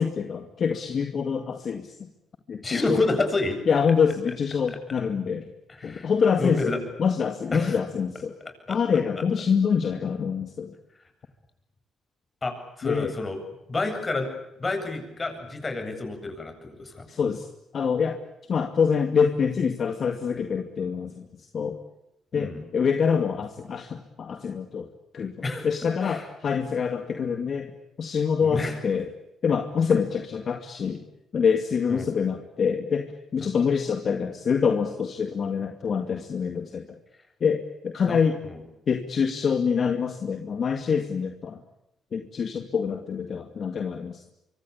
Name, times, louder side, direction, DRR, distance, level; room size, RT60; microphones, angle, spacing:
voice 1, 0.0-2.1 2.5-3.2 3.7-5.5 5.8-6.7 7.0-8.3 8.7-10.7 12.8-13.1 17.1-17.5 17.7-18.2 18.5-21.8 22.3-24.9 25.1-25.3 25.6-27.7 28.0-29.1 29.4-31.1 31.3-37.0 37.4-38.4 38.9-41.6 42.1-44.3, left 6 dB, 50° left, 6 dB, 2.3 m, -25 dB
voice 2, 2.6-3.6 5.8-6.1 6.4-6.8 7.5-7.8 8.7-8.8 12.4-13.4 13.7-14.3 14.6-17.1 22.3-22.6 25.4-25.7 26.0-26.2 28.4-28.8 31.9-32.1 33.4-33.5 38.1-38.2 38.4-38.6, left 2 dB, 30° left, 6 dB, 7.9 m, -29 dB
25.5 x 24.5 x 8.6 m, 0.87 s
cardioid pair, 90°, 0 cm